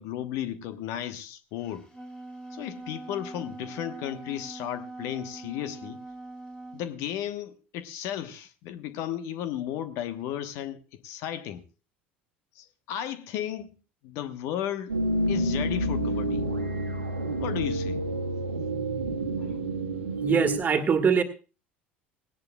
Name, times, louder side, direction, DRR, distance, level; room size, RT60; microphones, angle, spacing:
voice 1, 0.0-1.9 2.5-6.0 6.7-11.6 12.5-13.8 14.0-14.9 15.3-16.5 17.4-18.0 19.4-19.6, left 11 dB, 55° left, 1.0 m, -34 dB
Wind instrument woodwind instrument, 1.7-6.9, right 2 dB, 15° left, 3.7 m, -42 dB
sound 1, 14.9-20.6, right 1 dB, 85° right, 1.5 m, -29 dB
voice 2, 20.2-21.2, right 6 dB, 30° right, 1.7 m, -22 dB
18.0 x 17.5 x 2.3 m
figure-of-eight pair, 70°, 6 cm